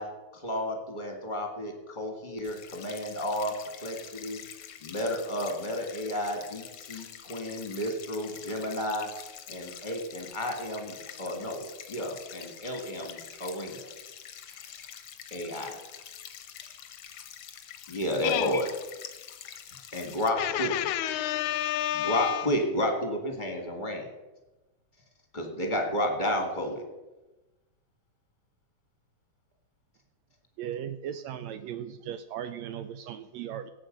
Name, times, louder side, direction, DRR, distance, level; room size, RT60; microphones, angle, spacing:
voice 1, 0.0-9.1 9.5-13.9 15.3-15.8 17.9-18.7 19.9-20.8 21.9-24.1 25.3-26.8, equal, 20° left, 3 dB, 1.3 m, -32 dB
sound 1, 2.4-20.3, left 9 dB, 65° left, 1.4 m, -46 dB
voice 2, 18.2-18.6 20.4-22.5, left 13 dB, 85° left, 15 dB, 2.0 m, -29 dB
voice 3, 30.6-33.7, right 9 dB, 80° right, 11 dB, 1.6 m, -37 dB
17.5 x 7.8 x 5.2 m, 1.1 s
omnidirectional pair, 3.5 m